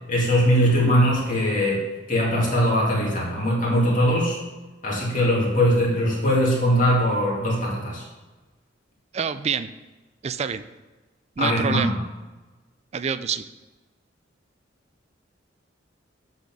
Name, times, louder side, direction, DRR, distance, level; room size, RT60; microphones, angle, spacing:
voice 1, 0.0-1.8 2.1-4.4 4.8-8.0 11.4-11.9, equal, 45° left, -4 dB, 2.4 m, -21 dB
voice 2, 9.1-9.7 10.2-10.6 11.4-12.0 12.9-13.4, right 6 dB, 35° right, 13 dB, 0.3 m, -26 dB
8.2 x 4.3 x 6.1 m, 1.2 s
head